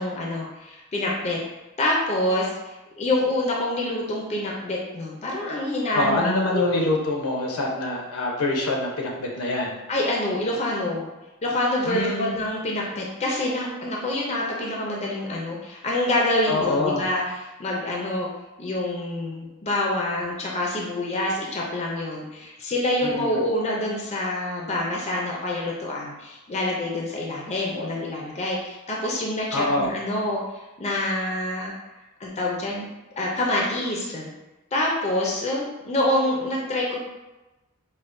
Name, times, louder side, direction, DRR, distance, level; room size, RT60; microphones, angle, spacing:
voice 1, 0.0-1.4 1.8-6.2 6.5-6.8 9.9-11.1 11.4-18.3 18.6-31.7 32.2-32.9 33.2-34.3 34.7-37.0, left 1 dB, 30° left, -2 dB, 0.5 m, -26 dB
voice 2, 5.9-9.8 11.9-12.3 16.5-17.1 23.0-23.4 29.5-29.9, left 2 dB, 80° left, -1 dB, 0.8 m, -25 dB
5.2 x 2.2 x 2.5 m, 1.1 s
head